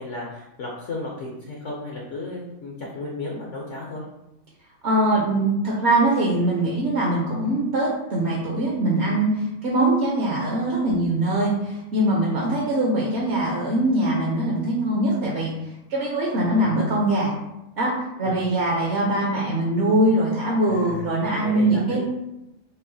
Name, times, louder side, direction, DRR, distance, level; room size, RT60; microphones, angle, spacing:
voice 1, 0.0-4.0 16.4-16.7 18.2-18.4 20.7-21.1 21.4-22.0, left 2 dB, 60° left, -3 dB, 0.9 m, -34 dB
voice 2, 4.8-9.3 9.6-15.5 15.9-17.3 17.8-22.0, right 1 dB, 55° right, -3 dB, 0.8 m, -22 dB
5.4 x 2.1 x 2.7 m, 0.92 s
omnidirectional pair, 1.6 m